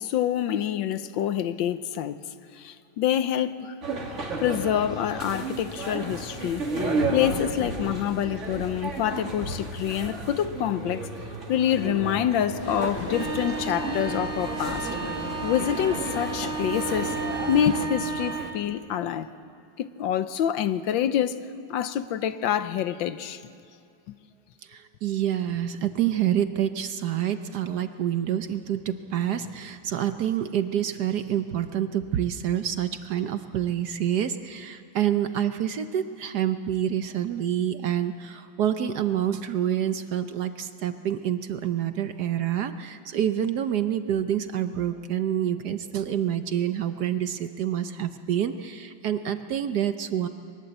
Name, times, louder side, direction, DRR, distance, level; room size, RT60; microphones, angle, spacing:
voice 1, 0.0-2.2 2.5-3.7 4.4-11.1 11.5-14.9 15.4-17.2 17.5-19.3 19.8-21.4 21.7-23.4 24.1-24.2, left 10 dB, 75° left, 1.4 m, -26 dB
sound 1, 3.8-18.5, right 3 dB, 35° right, 2.6 m, -32 dB
sound 2, 12.6-17.9, left 1 dB, 10° left, 1.5 m, -35 dB
voice 2, 24.7-50.3, right 10 dB, 65° right, 1.1 m, -27 dB
22.5 x 20.0 x 8.0 m
omnidirectional pair, 2.2 m